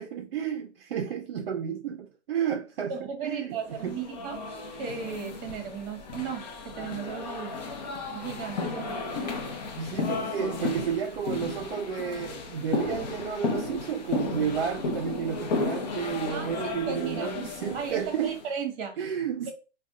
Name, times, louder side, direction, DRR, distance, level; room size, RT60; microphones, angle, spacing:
voice 1, 0.0-2.9 3.2-3.6 3.8-4.3 9.8-18.4 19.0-19.5, right 8 dB, 55° right, 0.5 m, -31 dB
voice 2, 2.9-4.4 4.8-7.8 8.1-9.5 16.3-17.3 17.7-19.1, right 6 dB, 25° right, 1.0 m, -36 dB
sound 1, 3.8-18.5, left 4 dB, 35° left, 0.6 m, -34 dB
2.6 x 2.2 x 3.5 m
hypercardioid pair, 145°, 36 cm